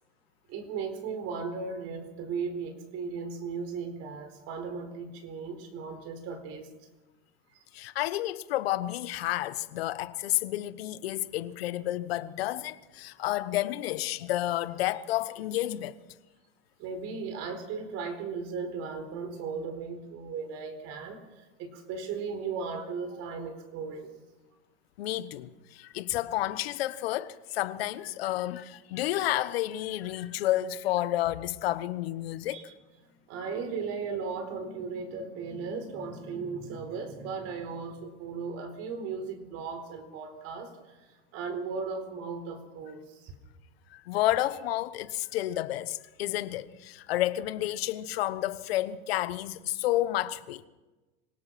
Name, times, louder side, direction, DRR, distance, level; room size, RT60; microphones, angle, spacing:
voice 1, 0.5-6.7 7.5-7.6 16.8-24.1 32.5-32.6 33.3-41.0 41.3-43.3, right 5 dB, 55° right, 4.5 m, -36 dB
voice 2, 7.7-16.0 25.0-32.6 43.9-50.6, left 14 dB, 85° left, 1.2 m, -30 dB
26.0 x 18.0 x 5.9 m
supercardioid pair, 115°, 30 cm